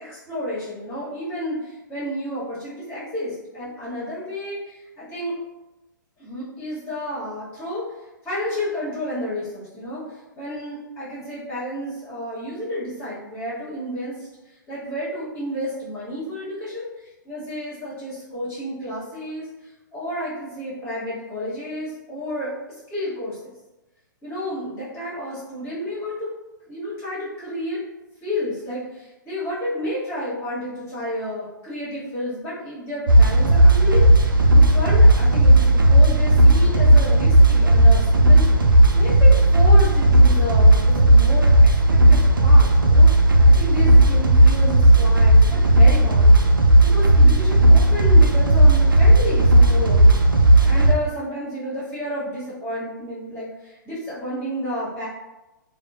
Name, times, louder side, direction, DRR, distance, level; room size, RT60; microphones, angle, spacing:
voice 1, 0.0-5.4 6.2-7.8 8.2-14.3 14.7-19.5 19.9-22.5 22.9-23.5 24.2-26.3 26.7-27.8 28.2-41.5 41.9-55.1, left 1 dB, 20° left, -10 dB, 1.3 m, -31 dB
sound 1, 33.1-50.9, right 1 dB, 85° right, 0.4 m, -14 dB
3.6 x 2.3 x 2.4 m, 1.0 s
figure-of-eight pair, 115°, 11 cm